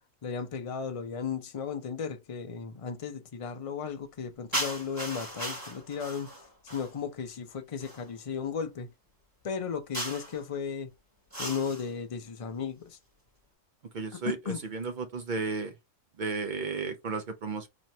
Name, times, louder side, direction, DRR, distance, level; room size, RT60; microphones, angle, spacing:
voice 1, 0.2-6.3 6.7-8.9 9.4-10.9 11.4-13.0 14.3-14.6, left 6 dB, 60° left, 0.3 m, -35 dB
sound 1, 4.5-7.0 7.8-8.1 9.9-10.4 11.3-11.9, right 1 dB, 15° right, 2.6 m, -36 dB
voice 2, 13.9-15.7 16.2-17.7, right 4 dB, 55° right, 0.5 m, -33 dB
4.3 x 3.0 x 2.7 m
omnidirectional pair, 1.4 m